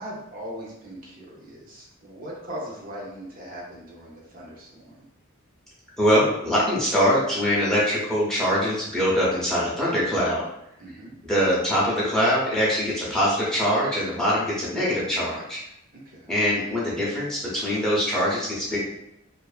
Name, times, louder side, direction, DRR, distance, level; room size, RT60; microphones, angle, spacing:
voice 1, 0.0-5.1 10.8-11.2 15.9-16.3, equal, 40° right, -4 dB, 0.6 m, -39 dB
voice 2, 6.0-10.4 11.2-15.6 16.3-18.8, equal, 5° left, -7 dB, 0.6 m, -23 dB
2.5 x 2.4 x 2.3 m, 0.81 s
head